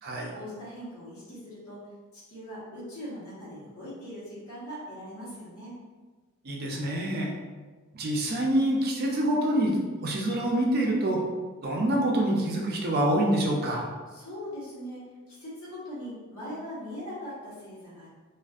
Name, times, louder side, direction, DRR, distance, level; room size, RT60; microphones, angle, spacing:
voice 1, 0.3-1.8 2.1-5.7 14.1-15.0 15.3-18.2, equal, 80° left, -8 dB, 1.1 m, -41 dB
voice 2, 6.4-7.3 7.9-9.7 10.0-11.2 11.6-13.8, right 1 dB, 45° right, -1 dB, 0.4 m, -26 dB
2.5 x 2.4 x 2.3 m, 1.3 s
head